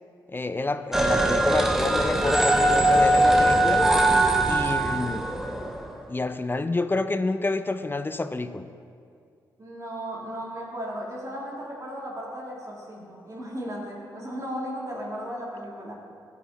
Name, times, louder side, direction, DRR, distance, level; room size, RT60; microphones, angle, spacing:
voice 1, 0.3-3.8 4.4-5.3 6.1-8.6, left 2 dB, 25° left, 10 dB, 0.5 m, -28 dB
sound 1, 0.9-5.8, right 1 dB, 5° right, 0.9 m, -21 dB
voice 2, 9.6-15.9, equal, 35° right, -4 dB, 2.4 m, -35 dB
14.5 x 5.1 x 4.1 m, 2.3 s
supercardioid pair, 45°, 9 cm